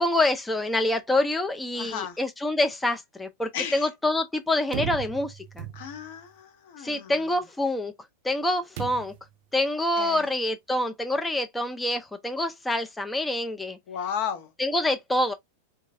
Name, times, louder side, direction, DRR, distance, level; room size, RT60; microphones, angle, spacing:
voice 1, 0.0-5.7 6.8-7.9 8.2-9.1 9.5-13.8 14.6-15.3, left 1 dB, 10° left, 0.4 m, -26 dB
voice 2, 1.7-2.2 3.5-3.9 5.7-7.2 10.0-10.2 13.9-14.5, left 8 dB, 50° left, 0.7 m, -34 dB
sound 1, 4.7-6.2 8.8-9.3, right 10 dB, 50° right, 0.5 m, -36 dB
3.7 x 2.3 x 2.6 m
figure-of-eight pair, 90°, 0 cm